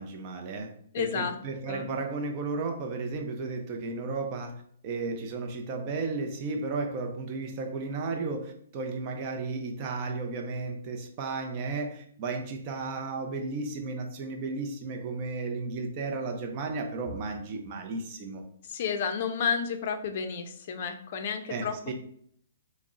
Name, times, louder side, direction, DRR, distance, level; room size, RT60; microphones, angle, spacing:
voice 1, 0.0-18.4 21.5-21.9, right 3 dB, 35° right, 3 dB, 0.5 m, -34 dB
voice 2, 0.9-1.3 1.7-1.9 18.7-21.7, left 6 dB, 45° left, 7 dB, 0.4 m, -31 dB
3.6 x 2.0 x 3.6 m, 0.64 s
hypercardioid pair, 150°, 0 cm